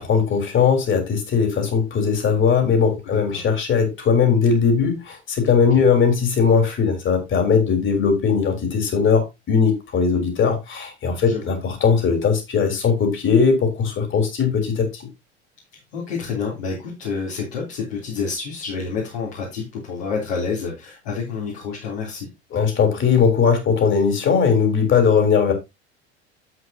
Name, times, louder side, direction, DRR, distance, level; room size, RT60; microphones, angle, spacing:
voice 1, 0.0-15.1 22.5-25.5, left 6 dB, 35° left, 3.6 m, -19 dB
voice 2, 3.1-3.4 5.7-5.8 11.2-11.5 15.9-22.3, left 5 dB, 65° left, 3.4 m, -28 dB
9.7 x 8.0 x 2.8 m
figure-of-eight pair, 70°, 34 cm